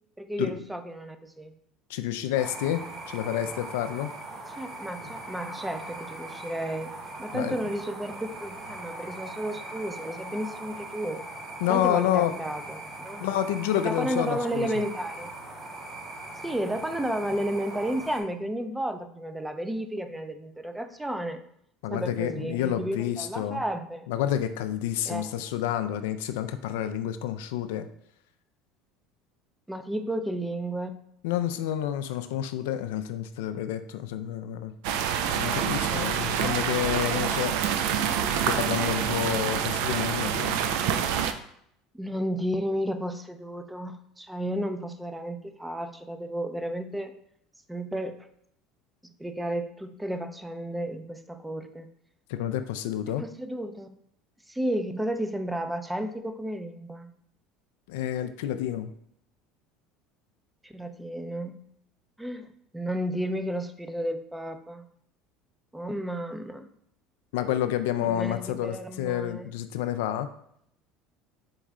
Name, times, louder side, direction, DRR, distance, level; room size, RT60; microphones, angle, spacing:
voice 1, 0.2-1.5 4.6-6.9 7.2-11.2 11.7-13.3 13.8-15.4 16.4-21.4 21.9-24.1 25.1-25.4 29.7-31.0 35.9-36.2 41.9-47.1 47.7-48.2 49.0-51.9 53.2-53.9 54.5-57.1 60.6-61.6 62.2-64.9 65.7-66.7 68.0-69.5, right 1 dB, 5° right, 8 dB, 0.5 m, -32 dB
voice 2, 1.9-4.1 7.3-7.5 11.6-12.3 13.2-14.7 21.8-23.6 24.1-27.9 31.2-34.7 35.4-37.6 38.3-40.6 52.3-53.2 57.9-58.9 67.3-70.3, left 11 dB, 85° left, 10 dB, 0.3 m, -29 dB
sound 1, 2.4-18.2, right 2 dB, 35° right, 1.4 m, -40 dB
sound 2, 34.8-41.3, right 8 dB, 75° right, 0.4 m, -27 dB
4.5 x 3.1 x 3.7 m, 0.70 s
supercardioid pair, 110°, 0 cm